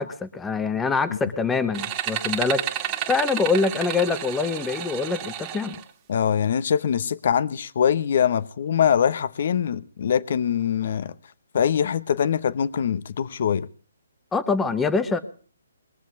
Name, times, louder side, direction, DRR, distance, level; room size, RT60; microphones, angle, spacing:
voice 1, 0.0-5.7 14.3-15.2, left 4 dB, 10° left, 1.1 m, -25 dB
sound 1, 1.7-5.8, right 11 dB, 25° right, 2.0 m, -31 dB
voice 2, 6.1-11.1 11.5-13.7, left 8 dB, 55° left, 0.9 m, -23 dB
22.0 x 7.5 x 8.3 m
hypercardioid pair, 145°, 0 cm